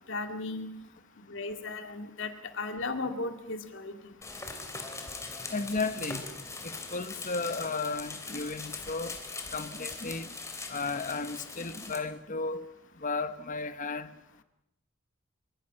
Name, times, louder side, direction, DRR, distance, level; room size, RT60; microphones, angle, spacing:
voice 1, 0.1-0.7 1.3-3.9, left 3 dB, 65° left, 2.2 m, -36 dB
sound 1, 4.2-12.0, left 3 dB, 15° left, 3.1 m, -41 dB
voice 2, 5.5-6.3 6.6-9.1 9.5-10.3 10.7-12.6 13.0-14.1, left 3 dB, 40° left, 1.3 m, -34 dB
24.0 x 23.5 x 5.8 m
head